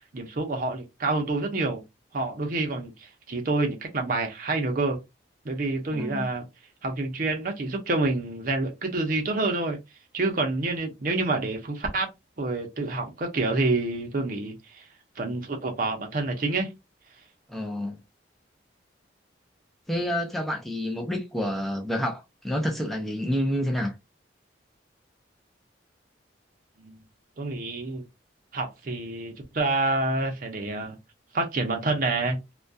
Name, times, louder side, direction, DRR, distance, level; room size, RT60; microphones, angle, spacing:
voice 1, 0.1-1.8 2.1-5.0 5.4-6.4 6.8-9.8 10.1-12.1 12.4-14.8 15.2-16.7 26.8-27.0 27.4-28.0 28.5-31.0 31.3-32.4, right 2 dB, 45° right, 0.6 m, -28 dB
voice 2, 5.9-6.3 17.5-18.0 19.9-23.9, equal, ahead, 0.3 m, -28 dB
2.2 x 2.2 x 2.5 m
head